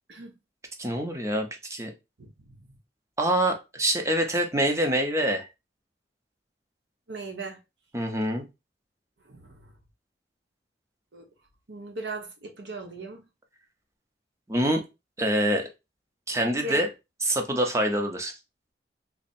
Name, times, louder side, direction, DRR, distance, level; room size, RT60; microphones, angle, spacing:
voice 1, 0.8-1.9 3.2-5.5 7.9-8.4 14.5-14.8 15.2-15.7 16.3-16.9 17.2-18.3, right 1 dB, 15° right, 0.6 m, -25 dB
voice 2, 2.2-2.7 7.1-7.6 9.2-9.7 11.1-11.2 11.7-13.2 16.6-16.8, right 2 dB, 85° right, 1.0 m, -38 dB
3.4 x 2.1 x 4.2 m
head